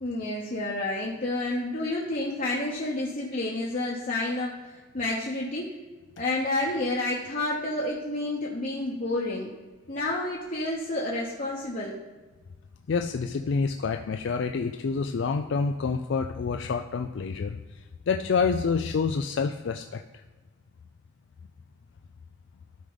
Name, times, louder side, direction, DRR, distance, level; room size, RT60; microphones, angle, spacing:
voice 1, 0.0-5.7 6.2-9.5 9.9-12.0, left 2 dB, 45° left, -4 dB, 1.0 m, -30 dB
voice 2, 12.9-17.6 18.1-20.0, left 5 dB, 60° left, 5 dB, 0.4 m, -27 dB
12.5 x 4.9 x 4.0 m, 1.3 s
head